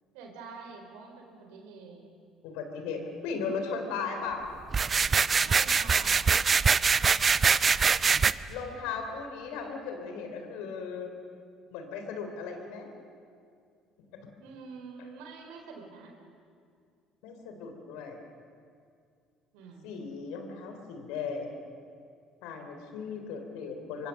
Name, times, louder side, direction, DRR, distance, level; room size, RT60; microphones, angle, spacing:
voice 1, 0.1-2.1 5.4-6.2 14.4-16.2 19.5-19.9, right 4 dB, 75° right, 3 dB, 3.9 m, -46 dB
voice 2, 2.4-4.5 8.5-11.1 11.7-12.9 17.2-18.2 19.8-21.6 22.4-24.1, left 5 dB, 70° left, 5 dB, 3.6 m, -36 dB
sound 1, 4.7-8.3, right 5 dB, 35° right, 0.6 m, -23 dB
24.5 x 24.0 x 6.6 m, 2.3 s
hypercardioid pair, 60°, 0 cm